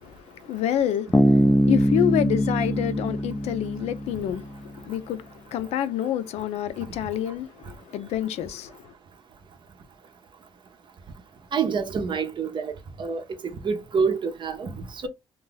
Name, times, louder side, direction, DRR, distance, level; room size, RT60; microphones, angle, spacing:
voice 1, 0.0-8.9, left 11 dB, 80° left, 0.4 m, -28 dB
Bass guitar, 1.1-4.6, equal, 5° left, 0.4 m, -22 dB
voice 2, 11.5-12.7 13.0-15.1, right 5 dB, 50° right, 0.7 m, -27 dB
2.6 x 2.3 x 3.9 m
cardioid pair, 95°, 11 cm